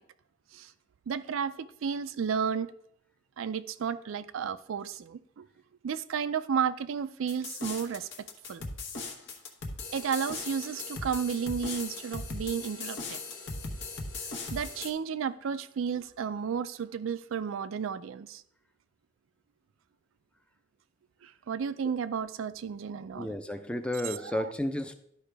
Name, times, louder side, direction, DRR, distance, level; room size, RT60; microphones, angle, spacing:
voice 1, 1.1-2.7 3.4-5.5 5.8-8.1 8.5-8.7 9.9-13.2 14.5-18.4 21.2-23.3 24.0-24.5, right 7 dB, 80° right, 0.4 m, -32 dB
sound 1, 7.3-14.9, left 3 dB, 60° left, 1.1 m, -38 dB
voice 2, 23.2-25.0, left 1 dB, 5° left, 0.5 m, -32 dB
12.0 x 4.8 x 3.4 m
head